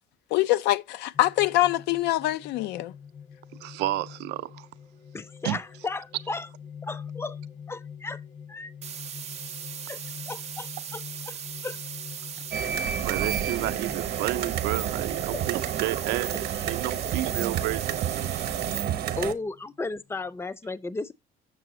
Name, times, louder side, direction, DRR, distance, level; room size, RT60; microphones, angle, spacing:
voice 1, 0.3-2.9, left 15 dB, 85° left, 0.5 m, -24 dB
sound 1, 1.1-20.3, left 7 dB, 45° left, 1.0 m, -46 dB
voice 2, 3.6-4.7 5.4-5.6 13.0-18.3, right 16 dB, 90° right, 0.5 m, -31 dB
voice 3, 5.1-6.5 6.8-7.4 7.7-8.2 8.5-8.7 9.9-11.0 11.3-11.8 15.3-15.4 19.2-21.1, left 3 dB, 15° left, 0.4 m, -34 dB
sound 2, 8.8-18.8, right 9 dB, 40° right, 0.6 m, -39 dB
sound 3, 12.5-19.3, right 9 dB, 65° right, 0.8 m, -30 dB
6.9 x 6.7 x 3.0 m
cardioid pair, 110°, 17 cm